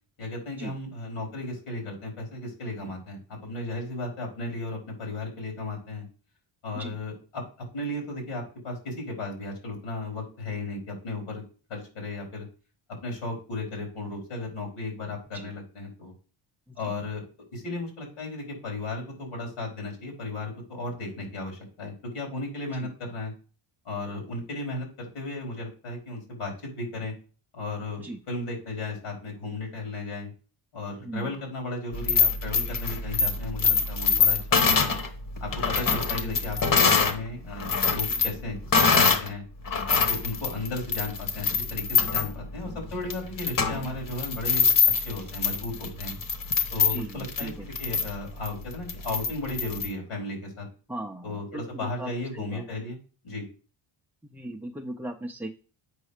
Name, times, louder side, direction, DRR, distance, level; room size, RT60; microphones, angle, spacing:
voice 1, 0.2-6.1 6.6-7.4 7.7-11.4 11.7-12.5 13.0-16.1 16.8-17.2 17.5-23.3 23.8-27.1 27.5-30.3 30.7-35.0 35.4-39.4 39.9-44.8 45.0-46.2 46.7-50.7 51.2-53.0 53.2-53.4, left 2 dB, 85° left, 0 dB, 4.3 m, -35 dB
voice 2, 31.0-31.4 35.8-36.0 46.9-47.7 50.9-52.6 54.3-55.5, right 1 dB, 5° right, 2 dB, 0.4 m, -38 dB
sound 1, 31.9-37.2 37.5-39.3 39.7-49.9, left 5 dB, 40° left, 1.2 m, -25 dB
8.1 x 5.5 x 5.0 m, 0.39 s
cardioid pair, 135°, 50 cm